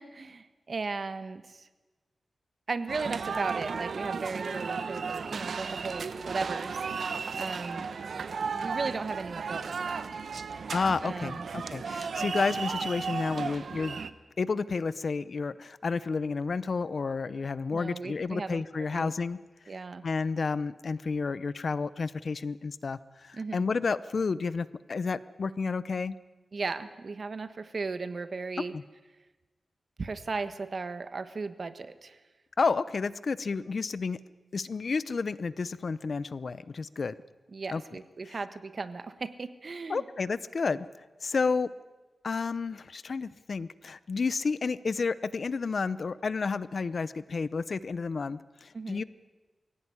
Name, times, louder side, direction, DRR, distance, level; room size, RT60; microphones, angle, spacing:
voice 1, 0.0-1.7 2.7-6.8 7.4-7.9 8.5-10.0 11.0-11.5 17.7-18.6 18.9-19.1 19.7-20.0 23.3-23.6 26.5-28.7 30.0-32.2 37.5-40.0 48.7-49.0, right 4 dB, 50° right, 11 dB, 1.4 m, -36 dB
sound 1, 2.9-14.1, right 5 dB, 75° right, 1.0 m, -34 dB
voice 2, 10.7-14.0 14.4-19.4 20.0-26.2 28.7-28.8 32.6-34.2 34.5-37.1 37.7-37.8 38.3-38.4 39.9-40.9 41.2-41.7 42.2-49.0, left 4 dB, 55° left, 17 dB, 0.7 m, -31 dB
23.0 x 17.0 x 9.8 m, 1.2 s
wide cardioid pair, 100°, 0 cm